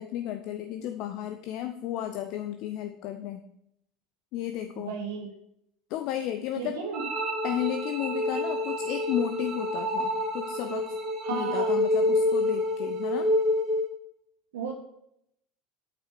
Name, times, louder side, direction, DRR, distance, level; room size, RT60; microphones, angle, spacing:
voice 1, 0.0-3.4 4.3-5.0 5.9-6.8 7.4-11.0 11.3-13.3, left 12 dB, 55° left, 7 dB, 0.7 m, -33 dB
voice 2, 4.7-5.3 6.6-7.0 11.2-11.8 14.5-14.7, right 6 dB, 65° right, 2 dB, 2.4 m, -34 dB
sound 1, 6.9-13.9, left 1 dB, 40° right, 2.2 m, -28 dB
8.6 x 8.2 x 4.9 m, 0.75 s
figure-of-eight pair, 70°, 0 cm